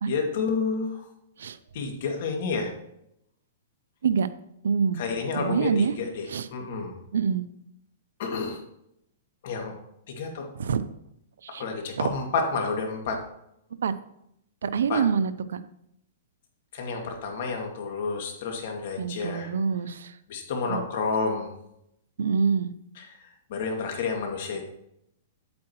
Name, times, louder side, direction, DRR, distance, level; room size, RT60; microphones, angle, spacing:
voice 1, 0.1-1.1 1.7-2.7 5.0-7.0 8.2-8.6 9.4-9.7 10.1-10.5 11.6-13.2 14.9-15.0 16.7-19.5 20.3-21.5 23.0-23.1 23.5-24.7, left 4 dB, 55° left, 2 dB, 2.2 m, -30 dB
voice 2, 4.6-5.0 5.4-5.9 6.3-6.5 7.1-7.4 10.6-10.8 11.4-11.6 12.0-12.1 13.8-13.9 14.6-15.6 19.0-20.2 20.7-20.8 22.2-22.7, right 6 dB, 90° right, 13 dB, 0.6 m, -25 dB
8.6 x 8.5 x 3.0 m, 0.76 s
hypercardioid pair, 160°, 0 cm